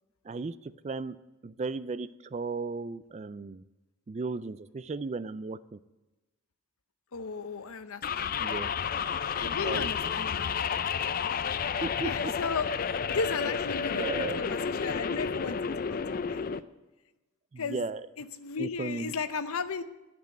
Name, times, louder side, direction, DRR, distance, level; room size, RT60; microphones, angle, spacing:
voice 1, 0.3-1.2 1.4-3.6 4.1-5.8 8.4-8.7 9.6-10.1 11.8-12.3 14.0-14.4 17.5-18.1 18.6-19.1, right 3 dB, 30° right, 15 dB, 0.3 m, -35 dB
voice 2, 7.1-8.3 9.4-10.6 12.0-12.7 13.1-15.6 15.9-16.5 17.6-17.9 18.2-19.8, left 5 dB, 80° left, 12 dB, 0.7 m, -35 dB
sound 1, 8.0-16.6, left 6 dB, 40° left, 0.4 m, -31 dB
10.5 x 6.2 x 8.7 m, 1.1 s
head